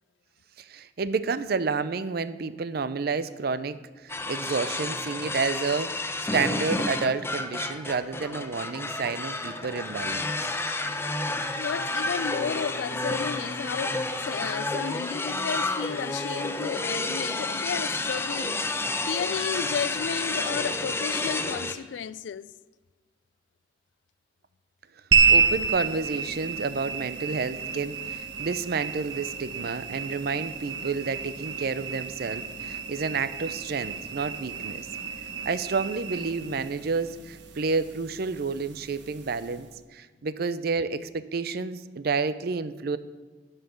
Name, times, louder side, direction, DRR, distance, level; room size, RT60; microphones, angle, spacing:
voice 1, 0.6-5.9 6.3-10.5 25.3-34.9 35.5-43.0, right 4 dB, 60° right, 0.5 m, -30 dB
sound 1, 4.1-21.7, left 2 dB, 15° left, 0.6 m, -30 dB
voice 2, 11.6-18.6 19.1-22.5, left 7 dB, 80° left, 0.3 m, -33 dB
sound 2, 25.1-39.7, right 5 dB, 80° right, 1.0 m, -30 dB
11.0 x 5.7 x 7.1 m
head